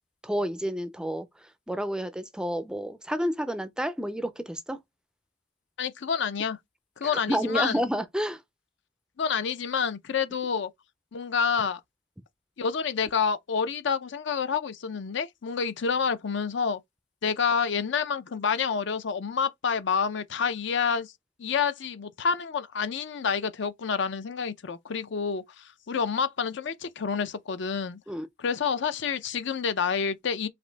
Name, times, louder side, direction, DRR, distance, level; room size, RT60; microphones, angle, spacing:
voice 1, 0.2-1.3 1.7-4.8 7.1-8.4 28.1-28.3, equal, 5° right, 0.4 m, -30 dB
voice 2, 5.8-6.6 7.0-7.8 9.2-10.7 11.1-11.8 12.6-16.8 17.2-21.1 21.4-28.0 28.4-30.5, left 6 dB, 65° left, 0.5 m, -28 dB
5.0 x 2.5 x 3.3 m
head